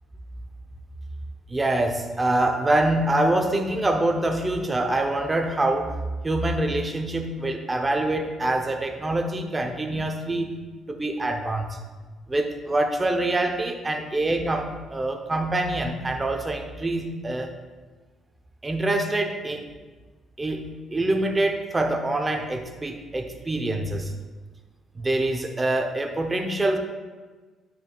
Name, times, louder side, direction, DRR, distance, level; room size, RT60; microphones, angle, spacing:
voice 1, 1.5-6.0 6.2-10.5 10.9-11.8 12.3-17.5 18.6-19.6 20.4-24.1 24.9-26.8, right 2 dB, 20° right, 4 dB, 0.7 m, -25 dB
9.5 x 6.0 x 2.4 m, 1.3 s
cardioid pair, 120°, 0 cm